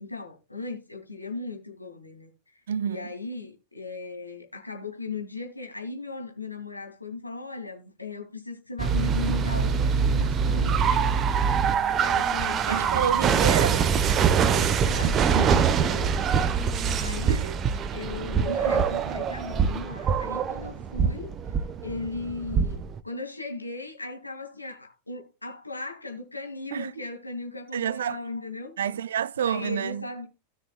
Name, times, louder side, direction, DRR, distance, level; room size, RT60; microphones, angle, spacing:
voice 1, 0.0-2.3 2.8-11.5 12.0-13.4 14.2-16.2 17.0-17.5 17.9-28.7 29.4-30.3, left 3 dB, 85° left, 2.4 m, -37 dB
voice 2, 2.7-3.1 12.7-13.9 15.3-15.5 17.3-17.6 26.7-27.1 27.7-28.2 28.8-30.1, right 8 dB, 65° right, 0.4 m, -29 dB
sound 1, 8.8-23.0, right 6 dB, 30° right, 0.9 m, -24 dB
Singing, 9.2-14.6 15.2-19.1, right 1 dB, 5° left, 0.9 m, -45 dB
17.0 x 6.5 x 2.2 m
figure-of-eight pair, 90°, 0 cm